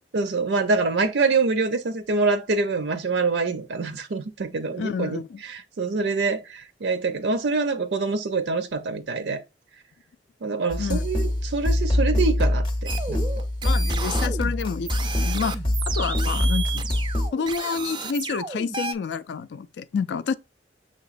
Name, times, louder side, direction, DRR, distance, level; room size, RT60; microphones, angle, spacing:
voice 1, 0.1-9.4 10.4-12.6 13.1-13.2, right 4 dB, 80° right, 0.5 m, -25 dB
voice 2, 4.8-5.4 10.8-11.0 13.6-16.9 17.3-20.3, left 5 dB, 75° left, 0.3 m, -29 dB
sound 1, 10.7-17.3, left 1 dB, 25° left, 0.6 m, -24 dB
sound 2, 12.9-18.9, right 5 dB, 25° right, 0.3 m, -33 dB
6.2 x 2.9 x 2.4 m
head